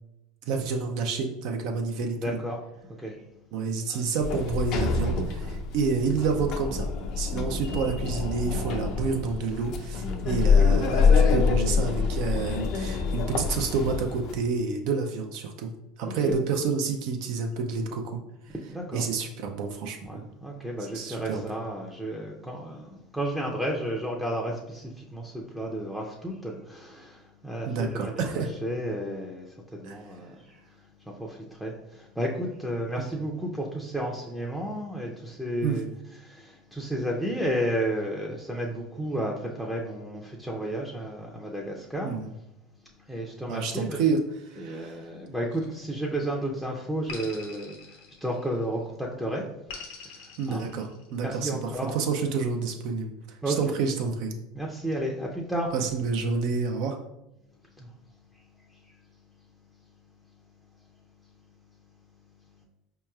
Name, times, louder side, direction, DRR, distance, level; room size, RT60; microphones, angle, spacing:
voice 1, 0.5-2.4 3.5-6.9 7.2-15.7 16.0-18.2 18.9-20.2 20.9-21.5 27.7-28.5 29.8-30.0 33.0-33.1 35.6-35.8 42.0-42.3 43.5-44.2 44.5-45.1 50.4-53.1 53.5-54.3 55.7-57.0, right 5 dB, 65° right, 3 dB, 0.4 m, -29 dB
voice 2, 2.0-2.6 2.9-3.2 3.9-4.0 7.4-7.5 10.2-10.5 16.0-16.3 18.7-19.1 20.0-35.9 36.2-42.2 43.1-44.0 44.6-49.5 49.7-50.7 51.2-51.9 53.4-53.7 54.5-55.7 57.8-57.9 58.3-59.0, right 1 dB, 5° right, -2 dB, 0.5 m, -33 dB
Sliding door, 4.2-14.4, left 5 dB, 55° left, 0.4 m, -25 dB
sound 1, 45.5-46.3 47.1-48.7 49.7-51.4, left 4 dB, 85° left, 0.7 m, -44 dB
4.5 x 3.0 x 2.3 m, 0.90 s
supercardioid pair, 100°, 0 cm